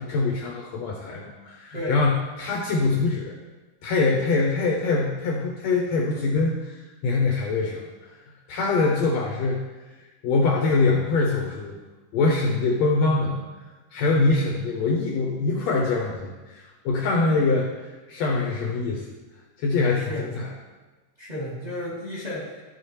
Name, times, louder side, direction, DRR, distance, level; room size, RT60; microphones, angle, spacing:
voice 1, 0.0-3.4 3.8-7.8 8.5-9.6 10.2-11.8 12.1-13.4 13.9-17.7 18.1-19.1 19.6-20.5, left 3 dB, 70° left, -1 dB, 1.8 m, -23 dB
voice 2, 19.9-20.3 21.2-22.6, left 1 dB, 15° right, -6 dB, 1.9 m, -32 dB
13.0 x 4.9 x 3.1 m, 1.2 s
omnidirectional pair, 3.6 m